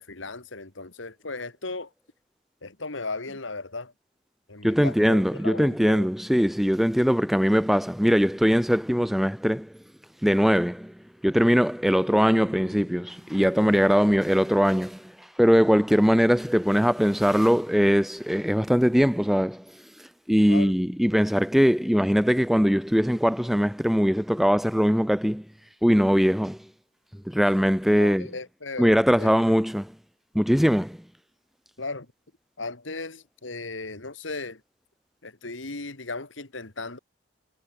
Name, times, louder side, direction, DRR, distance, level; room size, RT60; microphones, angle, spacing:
voice 1, 0.0-1.9 2.6-3.9 4.5-6.1 20.5-20.7 28.0-29.6 31.8-32.1 32.6-34.6 35.2-37.0, left 3 dB, 80° left, 2.5 m, -36 dB
voice 2, 4.6-9.7 10.2-10.9 11.2-15.1 15.4-19.6 20.3-25.4 25.8-26.6 27.3-28.3 28.8-29.9 30.3-31.0, equal, ahead, 0.5 m, -21 dB
head